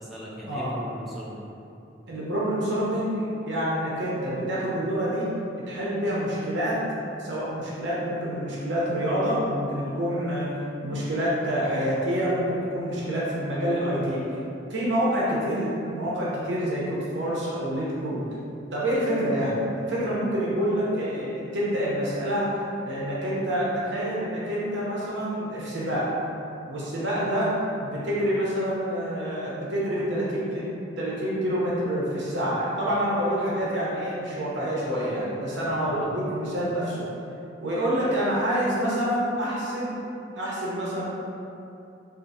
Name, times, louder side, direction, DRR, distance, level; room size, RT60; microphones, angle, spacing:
voice 1, 0.0-1.6 35.8-36.3, equal, ahead, -7 dB, 0.4 m, -38 dB
voice 2, 2.1-5.3 5.7-6.8 7.2-10.5 10.8-14.2 14.7-18.3 18.7-26.1 26.7-27.5 27.8-30.6 31.0-37.1 37.6-40.0 40.3-41.0, equal, 65° right, -7 dB, 0.7 m, -27 dB
3.6 x 2.5 x 2.7 m, 2.7 s
head